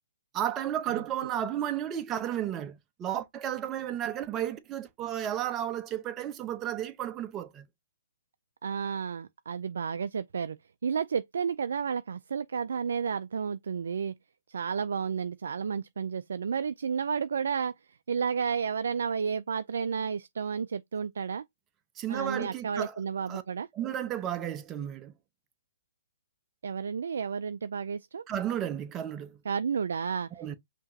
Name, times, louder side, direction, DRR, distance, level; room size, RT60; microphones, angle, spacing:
voice 1, 0.3-7.7 22.0-23.0 23.3-23.4 23.7-25.1 28.3-29.4 30.3-30.5, right 10 dB, 20° right, 0.8 m, -33 dB
voice 2, 8.6-10.6 10.8-14.1 14.5-21.4 22.1-23.7 26.6-28.2 29.5-30.3, right 6 dB, 75° right, 0.3 m, -32 dB
5.6 x 2.9 x 2.7 m
hypercardioid pair, 140°, 0 cm